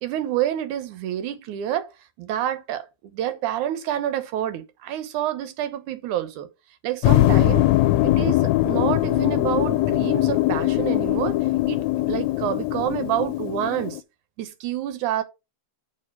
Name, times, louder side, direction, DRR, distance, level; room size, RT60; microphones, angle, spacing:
voice 1, 0.0-1.9 2.2-6.5 6.8-7.7 8.0-11.4 11.7-14.0 14.4-15.2, right 11 dB, 85° right, 2.5 m, -28 dB
sound 1, 7.0-14.0, left 16 dB, 80° left, 1.8 m, -21 dB
7.8 x 4.8 x 5.3 m
omnidirectional pair, 3.4 m